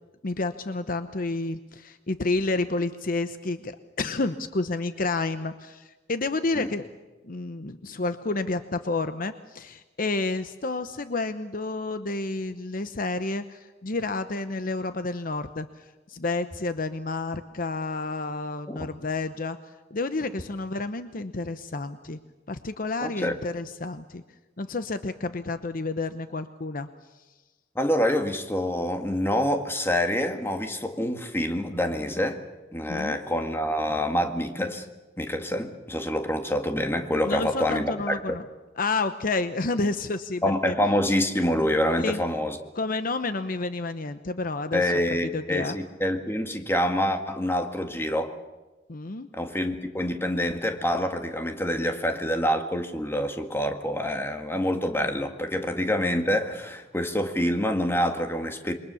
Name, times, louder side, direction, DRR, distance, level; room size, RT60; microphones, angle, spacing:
voice 1, 0.2-6.8 7.2-15.7 16.1-19.6 19.9-22.2 22.5-24.2 24.6-26.9 32.9-33.2 37.2-38.4 38.8-40.7 42.0-42.2 42.7-45.8 48.9-49.3, left 3 dB, 50° left, 10 dB, 0.9 m, -30 dB
voice 2, 23.0-23.4 27.8-32.4 32.7-34.8 35.2-38.4 40.4-42.6 44.7-48.3 49.3-58.7, left 1 dB, 15° left, 5 dB, 1.9 m, -26 dB
28.0 x 23.0 x 7.0 m, 1.2 s
head